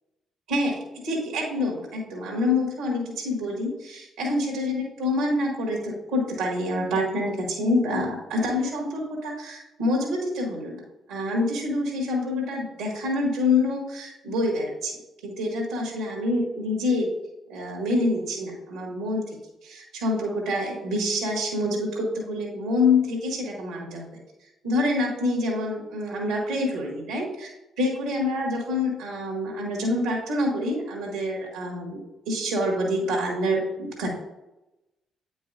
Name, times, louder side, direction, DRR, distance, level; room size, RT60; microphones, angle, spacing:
voice 1, 0.5-15.0 15.2-17.1 17.5-19.4 19.6-24.1 24.6-34.1, left 2 dB, 80° right, -2 dB, 1.9 m, -27 dB
8.9 x 5.4 x 2.6 m, 0.96 s
hypercardioid pair, 45°, 0 cm